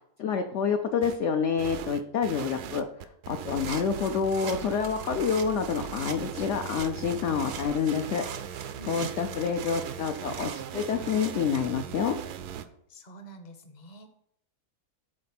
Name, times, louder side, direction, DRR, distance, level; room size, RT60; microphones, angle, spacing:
voice 1, 0.2-2.8 3.3-8.2 8.9-12.2, left 6 dB, 65° left, 5 dB, 0.8 m, -28 dB
sound 1, 1.0-1.2 1.6-12.6, right 9 dB, 80° right, 1.1 m, -39 dB
sound 2, 3.4-11.7, right 7 dB, 55° right, 0.7 m, -43 dB
voice 2, 8.7-9.1 12.9-14.1, right 1 dB, 35° left, 7 dB, 0.9 m, -47 dB
7.8 x 4.2 x 5.8 m, 0.70 s
omnidirectional pair, 1.7 m